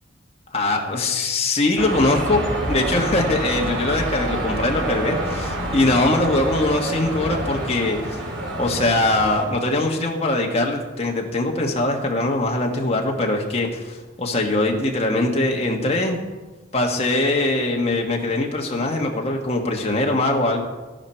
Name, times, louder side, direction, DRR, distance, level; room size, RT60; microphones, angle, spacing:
voice 1, 0.5-8.2 8.5-16.2 16.7-20.6, left 2 dB, 35° left, 0 dB, 1.5 m, -22 dB
sound 1, 1.8-9.4, right 1 dB, 80° right, 3.2 m, -27 dB
13.0 x 12.0 x 4.5 m, 1.2 s
head